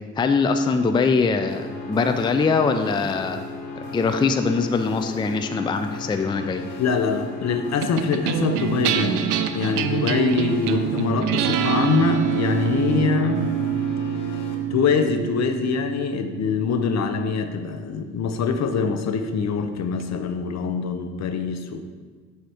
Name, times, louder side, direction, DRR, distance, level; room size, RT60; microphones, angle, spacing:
voice 1, 0.2-3.4 3.9-6.6, left 4 dB, 15° left, 7 dB, 0.4 m, -22 dB
sound 1, 1.5-14.6, left 3 dB, 85° left, 0.8 m, -35 dB
voice 2, 6.8-13.5 14.7-21.8, left 5 dB, 60° left, 8 dB, 0.6 m, -24 dB
sound 2, 7.8-18.4, right 10 dB, 80° right, 0.5 m, -26 dB
7.5 x 2.8 x 4.8 m, 1.5 s
supercardioid pair, 70°, 31 cm